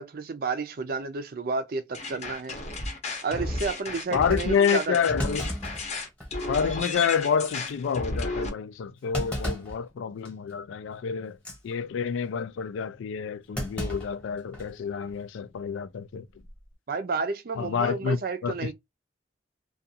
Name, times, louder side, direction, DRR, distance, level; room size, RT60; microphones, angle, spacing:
voice 1, 0.0-2.6 3.2-5.0 16.9-18.7, right 4 dB, 50° right, 0.4 m, -31 dB
sound 1, 1.9-8.5, left 2 dB, 35° left, 0.7 m, -33 dB
Thump thud, 3.7-3.8 4.3-4.4 5.2-6.5 6.9-7.0 7.5-7.7 9.1-9.8 10.2-10.5 11.3-11.6 13.5-14.8 15.1-15.2 16.3-16.6, equal, 5° left, 1.0 m, -34 dB
voice 2, 4.1-5.5 6.5-11.4 11.6-16.3 17.6-18.7, left 6 dB, 85° left, 0.3 m, -28 dB
2.4 x 2.3 x 2.7 m
head